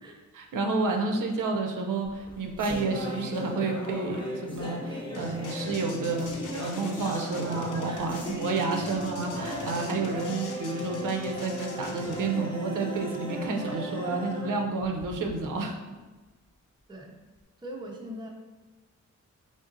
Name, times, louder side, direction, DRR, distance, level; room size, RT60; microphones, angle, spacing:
voice 1, 0.3-6.3 6.6-15.8, right 3 dB, 80° right, 2 dB, 0.6 m, -30 dB
sound 1, 2.0-15.5, equal, 15° left, 0.8 m, -37 dB
sound 2, 5.1-12.2, left 4 dB, 75° left, 0.6 m, -43 dB
voice 2, 17.6-18.3, equal, 15° right, 0 dB, 0.4 m, -40 dB
3.9 x 3.6 x 2.5 m, 1.3 s
wide cardioid pair, 145°, 31 cm